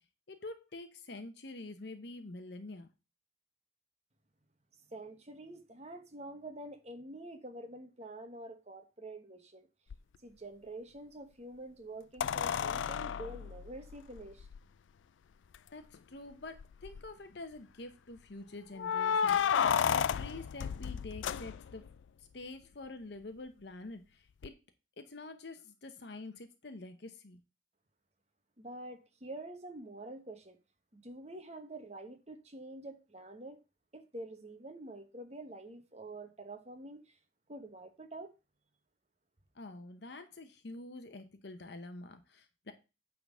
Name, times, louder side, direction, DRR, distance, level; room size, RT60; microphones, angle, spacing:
voice 1, 0.3-2.9 15.7-21.9 22.2-24.5 25.0-27.4 39.5-42.7, left 2 dB, 60° left, 0.8 m, -47 dB
voice 2, 4.9-9.7 10.2-14.5 28.6-30.6 30.9-33.6 33.9-37.2 37.5-38.3, right 1 dB, 35° right, 1.1 m, -47 dB
sound 1, 9.9-10.0 12.2-14.6 15.5-15.6 15.9-16.0 16.6-17.1 18.8-21.9 24.4-24.5, left 7 dB, 75° left, 0.3 m, -32 dB
9.0 x 3.8 x 6.2 m
head